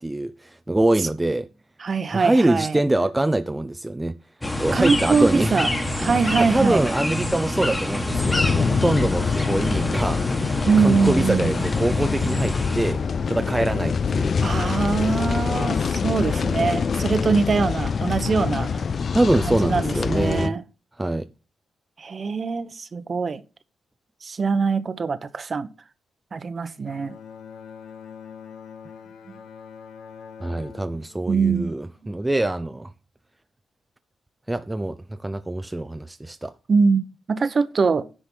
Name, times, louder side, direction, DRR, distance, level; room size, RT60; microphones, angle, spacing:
voice 1, 0.0-1.5 2.1-4.2 4.6-5.6 6.4-14.4 19.1-20.6 21.0-21.3 30.4-32.9 34.5-36.5, right 1 dB, 10° right, 0.5 m, -24 dB
voice 2, 1.8-2.8 4.7-5.7 5.9-6.9 10.7-11.5 14.4-18.8 19.4-20.6 22.0-23.4 24.2-25.7 26.3-27.2 31.3-31.7 36.7-37.0 37.3-38.1, right 5 dB, 40° right, 1.0 m, -22 dB
sound 1, 4.4-12.9, left 1 dB, 15° left, 1.5 m, -27 dB
sound 2, 8.1-20.5, left 6 dB, 45° left, 0.4 m, -25 dB
Bowed string instrument, 26.8-32.3, left 7 dB, 80° left, 1.4 m, -43 dB
10.0 x 5.1 x 7.5 m
cardioid pair, 110°, 0 cm